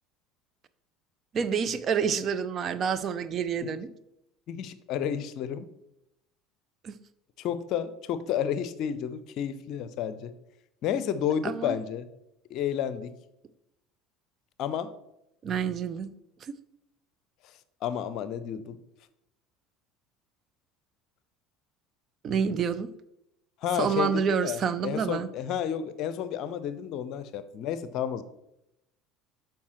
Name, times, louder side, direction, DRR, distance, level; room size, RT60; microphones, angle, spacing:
voice 1, 1.3-3.9 6.8-6.9 11.4-11.8 15.4-16.1 22.2-22.9 23.7-25.3, right 7 dB, 40° right, 0.5 m, -28 dB
voice 2, 4.5-5.7 7.4-10.3 10.8-12.1 12.5-13.1 14.6-14.9 17.8-18.8 23.6-28.2, left 9 dB, 50° left, 0.6 m, -31 dB
12.5 x 4.6 x 3.1 m
figure-of-eight pair, 65°, 0 cm